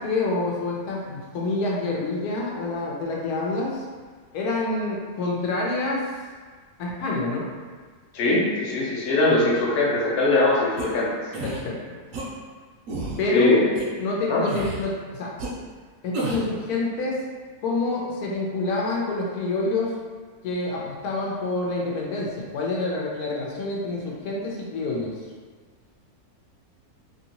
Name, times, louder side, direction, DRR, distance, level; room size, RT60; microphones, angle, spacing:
voice 1, 0.0-3.8 4.3-6.0 6.8-7.5 11.4-11.8 13.2-13.6 14.0-15.3 16.0-17.2 17.6-19.9 20.4-25.2, left 2 dB, 80° left, -3 dB, 1.1 m, -27 dB
voice 2, 8.1-11.1 13.3-13.6 14.3-14.4, left 2 dB, 55° left, -5 dB, 0.7 m, -21 dB
sound 1, 10.8-10.9 11.3-11.6 12.1-12.3 12.9-13.2 13.8-13.9 14.5-14.8 15.4-15.5 16.1-16.5, right 2 dB, 70° right, 0.9 m, -31 dB
2.9 x 2.7 x 2.8 m, 1.5 s
omnidirectional pair, 1.6 m